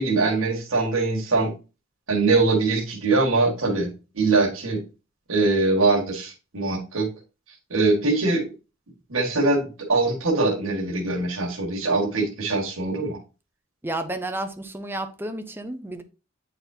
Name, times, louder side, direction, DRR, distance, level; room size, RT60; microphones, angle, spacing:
voice 1, 0.0-1.5 2.1-4.8 5.3-7.1 7.7-8.5 9.1-13.2, right 3 dB, 85° right, 1.6 m, -22 dB
voice 2, 13.8-16.0, right 1 dB, 10° right, 0.6 m, -31 dB
8.4 x 4.2 x 2.7 m
head